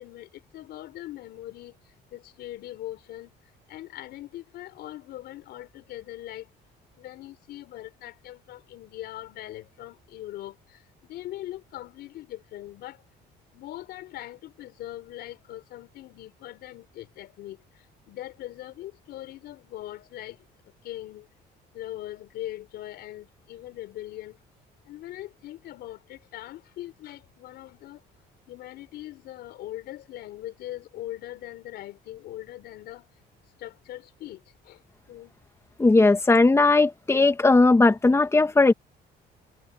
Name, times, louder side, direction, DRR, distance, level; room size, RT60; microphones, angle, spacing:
voice 1, 0.0-3.3 3.7-6.5 7.0-13.0 13.5-20.4 20.8-21.3 21.7-24.4 24.8-28.0 28.5-33.1 33.6-34.8 35.1-35.3, left 14 dB, 75° left, 4.2 m, -41 dB
voice 2, 35.8-38.7, left 3 dB, 15° left, 1.8 m, -18 dB
cardioid pair, 110°, 17 cm